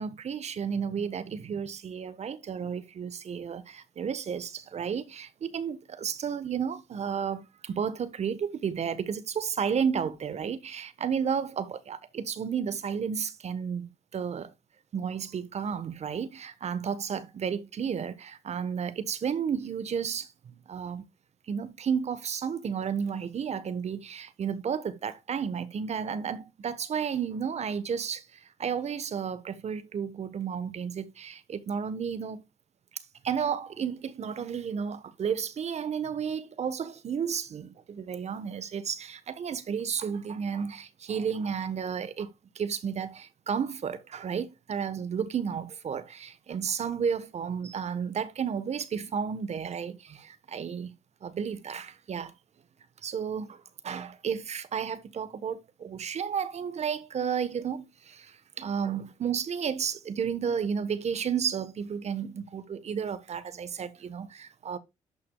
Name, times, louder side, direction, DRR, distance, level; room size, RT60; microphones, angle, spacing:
voice 1, 0.0-14.5 14.9-21.1 21.5-32.4 32.9-50.9 51.2-52.3 53.0-64.8, right 7 dB, 55° right, 1.2 m, -32 dB
11.5 x 5.8 x 2.3 m
supercardioid pair, 60°, 14 cm